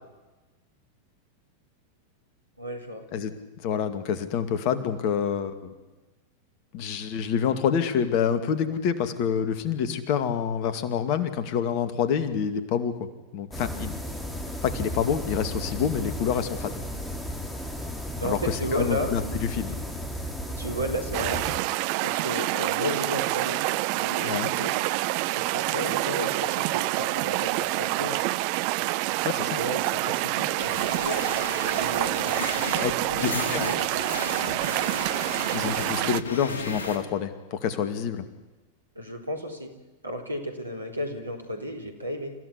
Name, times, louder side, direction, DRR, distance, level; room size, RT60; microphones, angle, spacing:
voice 1, 2.6-3.0 18.2-19.1 20.6-21.6 22.0-23.6 23.9-24.7 25.3-28.2 29.3-30.6 31.8-33.9 38.9-39.7 40.0-42.3, equal, 80° right, 4 dB, 4.0 m, -33 dB
voice 2, 3.6-5.7 6.7-13.9 14.6-16.8 18.2-19.8 24.2-24.5 29.2-29.6 32.8-32.9 33.2-33.7 35.5-38.2, left 8 dB, 45° left, 11 dB, 2.3 m, -27 dB
sound 1, 13.5-21.6, equal, 5° left, 3.3 m, -34 dB
sound 2, 21.1-36.2, right 19 dB, 45° right, 0.7 m, -27 dB
sound 3, 30.6-37.0, left 3 dB, 65° left, 3.5 m, -34 dB
28.5 x 15.5 x 9.8 m, 1.1 s
figure-of-eight pair, 90°, 0 cm